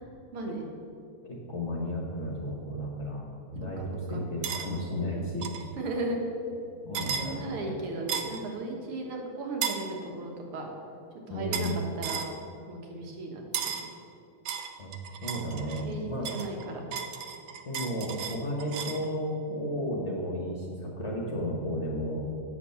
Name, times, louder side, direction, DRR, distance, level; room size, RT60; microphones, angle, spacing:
voice 1, 0.3-0.7 3.8-4.2 5.8-6.2 7.2-10.7 11.3-11.7 12.0-12.3 12.7-13.9 15.5-15.6 15.8-16.8, right 2 dB, 90° right, 1 dB, 2.3 m, -36 dB
voice 2, 1.3-3.2 3.5-5.7 6.8-7.7 11.3-11.8 14.8-14.9 15.2-16.3 17.6-22.3, equal, 40° left, -2 dB, 1.2 m, -33 dB
sound 1, 4.4-4.7 5.4-5.6 6.9-7.3 8.1-8.4 9.6-9.9 11.5-11.8 12.0-12.3 13.5-13.9 14.5-15.9 16.3-19.0, right 8 dB, 70° right, 1.3 m, -34 dB
8.4 x 6.0 x 6.9 m, 2.6 s
omnidirectional pair, 2.4 m